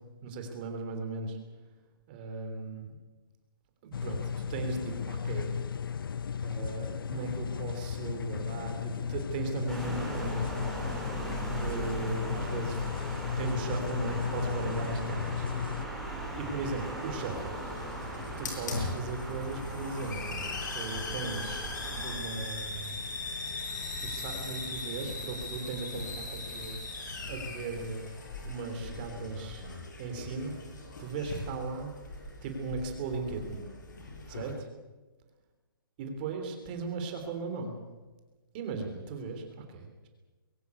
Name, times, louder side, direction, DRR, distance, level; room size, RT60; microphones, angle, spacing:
voice 1, 0.2-1.4 2.1-2.9 3.8-5.6 6.4-10.8 11.4-12.8 13.4-15.5 16.4-17.5 18.4-21.7 22.0-23.0 24.0-26.8 27.3-28.1 28.4-29.6 30.0-30.5 31.0-31.9 32.4-33.6 34.3-34.7 36.0-37.7 38.5-40.1, right 4 dB, 25° right, 5 dB, 3.4 m, -37 dB
sound 1, 3.9-15.9, left 7 dB, 70° left, 0.6 m, -35 dB
sound 2, 9.7-22.2, right 1 dB, ahead, 3.4 m, -39 dB
Hiss, 16.6-34.5, left 3 dB, 55° left, 7.4 m, -39 dB
22.5 x 16.5 x 8.4 m, 1.2 s
hypercardioid pair, 170°, 12 cm